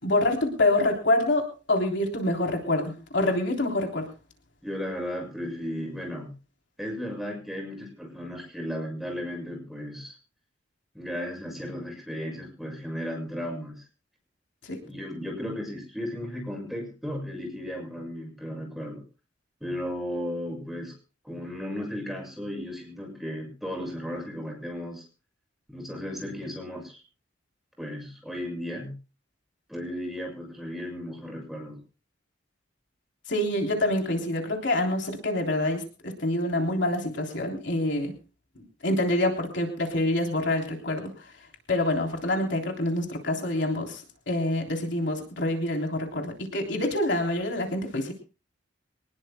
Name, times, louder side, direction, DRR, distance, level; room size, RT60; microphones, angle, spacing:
voice 1, 0.0-4.1 14.6-14.8 33.3-38.1 38.8-41.1 41.7-48.1, left 1 dB, 65° left, 2 dB, 3.5 m, -26 dB
voice 2, 4.6-6.4 6.8-10.1 10.9-13.8 14.8-19.0 19.6-20.9 21.2-25.1 25.7-27.0 27.8-29.0 29.7-31.8, equal, ahead, 2 dB, 6.9 m, -35 dB
25.0 x 20.0 x 2.2 m, 0.34 s
head